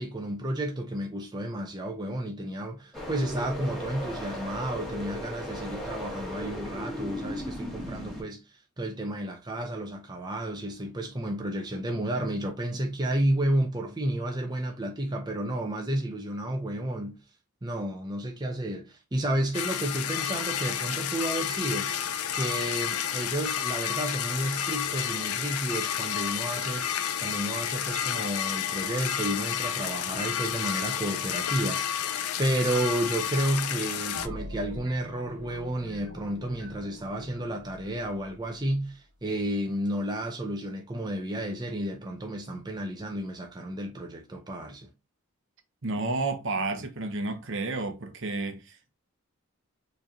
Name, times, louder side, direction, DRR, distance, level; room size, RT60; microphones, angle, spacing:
voice 1, 0.0-17.2 17.6-26.9 27.2-32.1 32.4-44.9, right 1 dB, 20° right, 0.6 m, -31 dB
sound 1, 2.9-8.2, left 1 dB, ahead, 1.5 m, -36 dB
sound 2, 19.5-34.3, left 9 dB, 80° left, 0.5 m, -31 dB
sound 3, 34.2-38.8, equal, 80° right, 1.3 m, -44 dB
voice 2, 45.8-48.9, right 3 dB, 55° right, 0.8 m, -31 dB
4.6 x 3.2 x 2.8 m
head